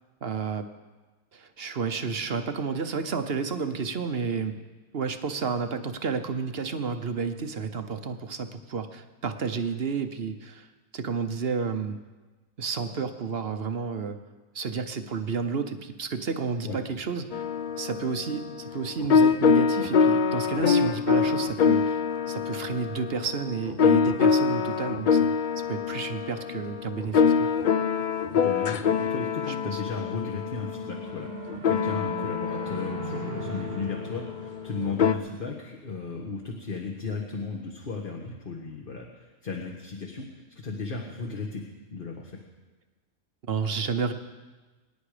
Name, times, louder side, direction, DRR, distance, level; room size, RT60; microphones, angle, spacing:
voice 1, 0.2-0.7 1.3-4.5 4.9-10.7 10.9-12.0 12.6-14.2 14.5-17.4 17.8-25.3 25.7-27.5 29.5-29.8 43.5-44.1, right 5 dB, 45° right, 8 dB, 1.0 m, -31 dB
sound 1, 17.3-35.1, left 6 dB, 85° left, 0.4 m, -25 dB
voice 2, 28.3-40.3 40.5-41.6 41.9-42.4, left 4 dB, 35° left, 0 dB, 1.5 m, -35 dB
sound 2, 30.2-35.8, right 8 dB, 80° right, 1.4 m, -41 dB
24.0 x 10.5 x 5.0 m, 1.2 s
omnidirectional pair, 1.6 m